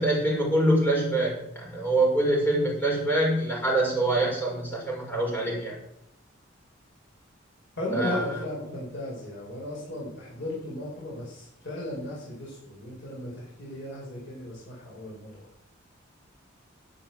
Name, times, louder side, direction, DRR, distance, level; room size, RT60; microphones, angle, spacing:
voice 1, 0.0-5.8 7.9-8.2, right 1 dB, 10° left, -3 dB, 6.0 m, -25 dB
voice 2, 7.8-15.3, left 1 dB, 60° left, -5 dB, 5.6 m, -35 dB
11.0 x 8.8 x 7.8 m, 0.77 s
head